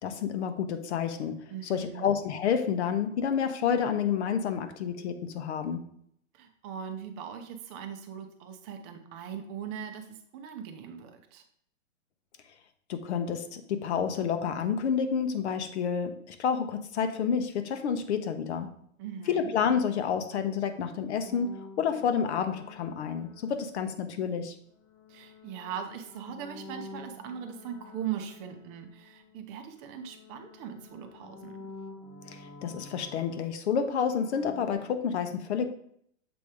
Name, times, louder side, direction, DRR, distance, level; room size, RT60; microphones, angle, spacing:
voice 1, 0.0-5.8 12.9-18.7 19.3-21.5 21.8-24.5 32.3-35.7, left 7 dB, 60° left, 9 dB, 0.9 m, -29 dB
voice 2, 1.5-2.1 6.3-11.4 19.0-19.5 25.1-31.6, right 8 dB, 25° right, 5 dB, 0.6 m, -40 dB
sound 1, 21.2-24.1 24.8-29.6 29.9-34.7, left 3 dB, 20° left, 0.5 m, -49 dB
7.0 x 3.0 x 4.8 m, 0.67 s
hypercardioid pair, 150°, 38 cm